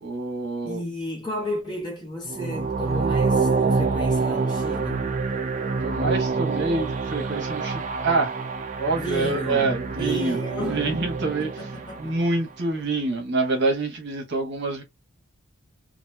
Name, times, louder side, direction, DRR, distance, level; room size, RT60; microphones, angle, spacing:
voice 1, 0.0-0.8 5.8-8.4 8.8-11.5 12.0-14.8, right 3 dB, 50° right, 1.0 m, -26 dB
voice 2, 0.6-5.1 9.0-12.2, equal, 20° left, 1.2 m, -33 dB
sound 1, 2.3-12.4, right 4 dB, 35° right, 0.4 m, -26 dB
2.9 x 2.5 x 2.2 m
head